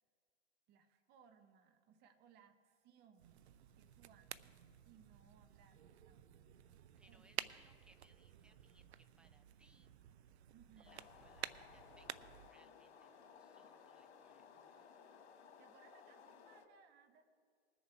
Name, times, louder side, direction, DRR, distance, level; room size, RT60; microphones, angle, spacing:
voice 1, 0.7-3.4 3.8-4.5 4.9-6.5 7.1-7.8 10.5-11.1 15.6-17.2, right 7 dB, 30° right, 7 dB, 1.1 m, -67 dB
sound 1, 3.2-12.5, right 11 dB, 80° right, 0.6 m, -52 dB
voice 2, 7.0-9.9 10.8-14.8, right 1 dB, 5° right, 8 dB, 0.3 m, -71 dB
sound 2, 10.8-16.7, left 6 dB, 80° left, 1.6 m, -60 dB
21.0 x 7.0 x 4.5 m, 2.2 s
hypercardioid pair, 125°, 32 cm